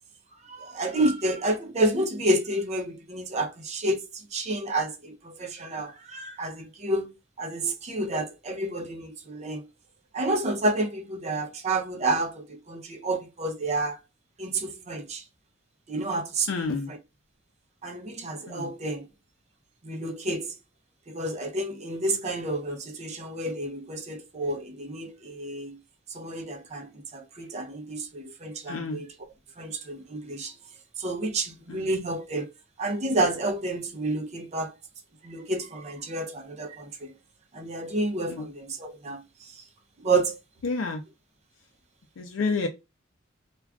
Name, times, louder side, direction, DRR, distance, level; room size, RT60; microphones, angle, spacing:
voice 1, 0.4-9.6 10.1-14.0 14.4-15.2 15.9-16.5 16.9-17.0 17.8-19.1 19.8-20.5 21.1-25.8 26.1-29.1 29.6-30.5 31.0-32.5 32.8-34.7 35.2-37.1 37.5-39.6 40.0-40.3, right 2 dB, 35° right, 0.5 m, -30 dB
voice 2, 16.5-16.9 18.5-18.7 28.7-29.0 31.7-31.8 38.3-38.5 40.6-41.0 42.2-42.7, left 4 dB, 80° left, 0.4 m, -29 dB
2.3 x 2.3 x 3.4 m
head